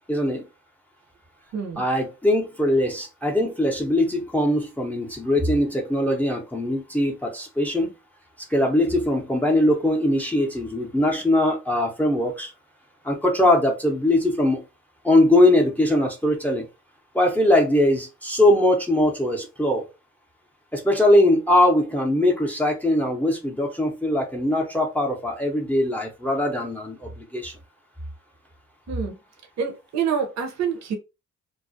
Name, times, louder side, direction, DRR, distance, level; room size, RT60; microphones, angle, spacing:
voice 1, 0.1-0.4 1.8-7.9 8.5-12.5 13.0-14.6 15.0-16.7 17.1-19.9 20.7-27.5, left 1 dB, 5° left, 0.6 m, -21 dB
voice 2, 1.5-1.8 28.9-29.1 29.6-30.9, right 7 dB, 65° right, 0.7 m, -27 dB
2.3 x 2.0 x 2.6 m
cardioid pair, 90°, 30 cm